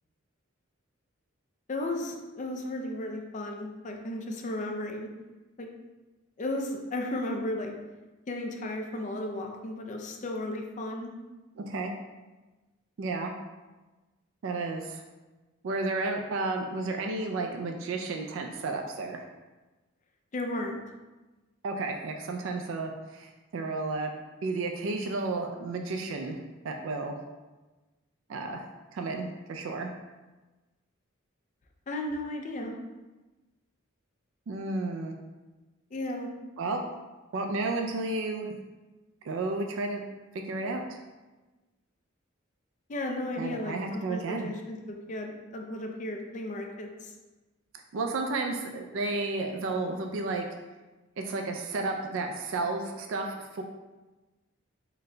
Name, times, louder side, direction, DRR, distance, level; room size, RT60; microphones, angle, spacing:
voice 1, 1.7-5.1 5.6-5.7 6.4-7.7 8.3-11.1 20.3-20.8 31.9-32.8 35.9-36.3 42.9-47.1, left 1 dB, 35° left, 2 dB, 0.4 m, -34 dB
voice 2, 11.6-11.9 13.0-13.3 14.4-15.0 15.6-19.2 21.6-24.1 24.4-27.1 28.3-28.7 28.9-29.9 34.5-35.2 36.6-36.8 37.3-38.5 39.2-40.0 40.3-41.0 43.4-44.5 47.9-50.5 51.2-53.6, right 3 dB, 65° right, 3 dB, 0.3 m, -32 dB
3.9 x 2.2 x 3.7 m, 1.2 s
head